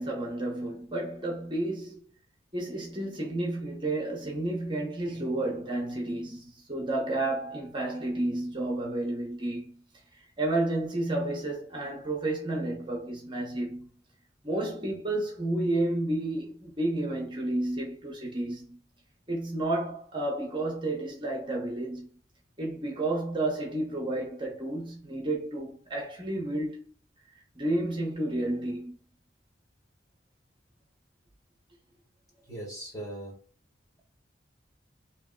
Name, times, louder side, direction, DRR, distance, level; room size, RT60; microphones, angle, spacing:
voice 1, 0.0-2.0 2.5-9.8 10.4-13.9 14.4-18.8 19.3-22.1 22.6-26.8 27.5-28.9, right 2 dB, 25° right, 0.9 m, -31 dB
voice 2, 32.5-33.3, right 1 dB, 20° left, 1.6 m, -40 dB
3.4 x 3.0 x 3.7 m
head